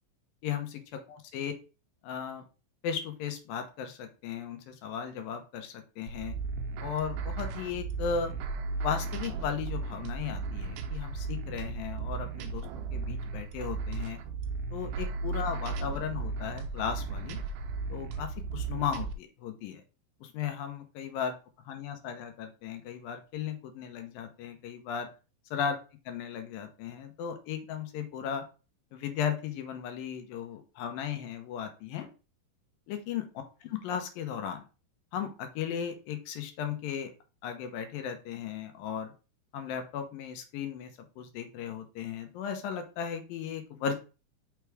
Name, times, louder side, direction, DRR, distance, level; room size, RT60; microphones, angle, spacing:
voice 1, 0.4-1.5 2.0-2.4 2.8-6.4 6.8-8.3 8.8-14.2 14.7-17.4 17.9-19.8 20.2-21.4 21.7-25.1 25.5-25.8 26.1-28.4 28.9-32.1 32.9-33.2 33.8-34.6 35.1-37.1 37.4-39.1 39.5-40.9 41.2-44.0, left 7 dB, 80° left, 6 dB, 2.6 m, -36 dB
sound 1, 6.1-19.1, right 4 dB, 80° right, 2.1 m, -35 dB
6.0 x 3.5 x 4.7 m, 0.32 s
omnidirectional pair, 4.2 m